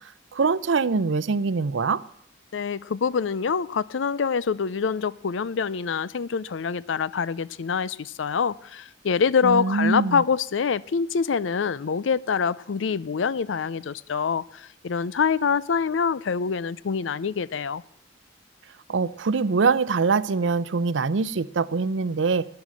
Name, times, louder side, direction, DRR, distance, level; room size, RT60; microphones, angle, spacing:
voice 1, 0.3-2.0 9.4-10.2 18.9-22.4, right 4 dB, 75° right, 0.5 m, -23 dB
voice 2, 2.5-17.8, left 6 dB, 80° left, 0.5 m, -25 dB
12.5 x 9.7 x 7.6 m
head